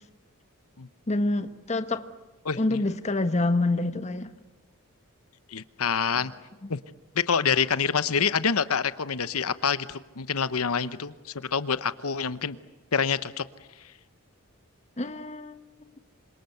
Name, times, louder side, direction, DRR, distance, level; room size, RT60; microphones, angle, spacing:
voice 1, 1.1-2.0 2.5-4.3 6.6-6.7 15.0-15.6, left 2 dB, 30° left, 10 dB, 1.4 m, -27 dB
voice 2, 2.4-2.8 5.5-6.3 6.7-6.8 7.2-11.1 11.5-12.6 12.9-13.4, left 6 dB, 85° left, 14 dB, 1.0 m, -26 dB
27.5 x 26.0 x 8.0 m, 1.1 s
head